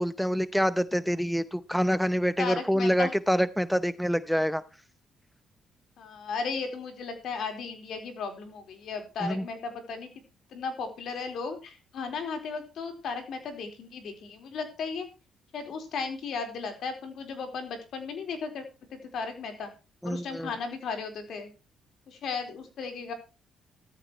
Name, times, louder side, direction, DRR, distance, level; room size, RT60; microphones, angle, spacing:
voice 1, 0.0-4.6 9.2-9.4 20.0-20.5, equal, ahead, 15 dB, 0.7 m, -26 dB
voice 2, 2.4-3.1 6.0-10.1 10.5-15.1 15.5-18.6 18.9-19.7 20.0-21.5 22.1-23.1, left 5 dB, 70° left, 6 dB, 4.1 m, -35 dB
15.0 x 13.5 x 3.1 m, 0.31 s
cardioid pair, 90°, 0 cm